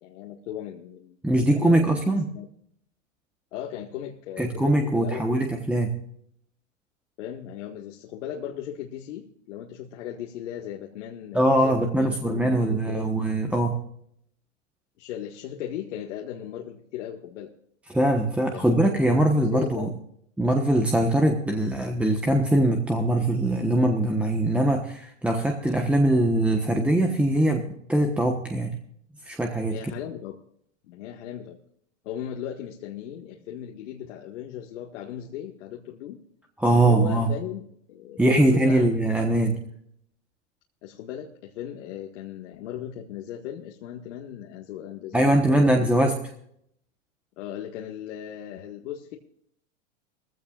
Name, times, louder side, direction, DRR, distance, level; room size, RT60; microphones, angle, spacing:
voice 1, 0.0-2.0 2.3-2.5 3.5-5.5 7.2-13.1 15.0-17.5 18.3-19.9 29.7-30.4 30.8-31.6 32.0-36.2 36.7-39.6 40.8-46.1 47.4-49.2, left 10 dB, 75° left, 0 dB, 1.9 m, -37 dB
voice 2, 1.2-2.3 4.4-6.0 11.3-13.8 17.9-19.9 20.4-27.6 27.9-28.8 29.2-29.8 36.6-37.3 38.2-39.6 45.1-46.1, right 1 dB, 5° right, 2 dB, 1.2 m, -22 dB
21.0 x 15.5 x 2.5 m, 0.69 s
supercardioid pair, 135°, 37 cm